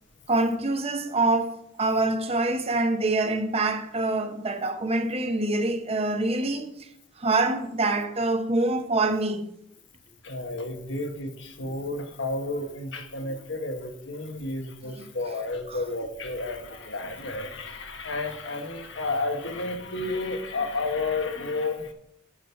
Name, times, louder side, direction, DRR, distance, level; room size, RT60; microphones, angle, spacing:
voice 1, 0.3-6.9 7.2-9.5 11.6-11.7 15.7-15.8, right 2 dB, 30° right, 0.8 m, -25 dB
voice 2, 10.2-21.9, left 2 dB, 75° left, 1.3 m, -31 dB
8.9 x 6.1 x 5.7 m
head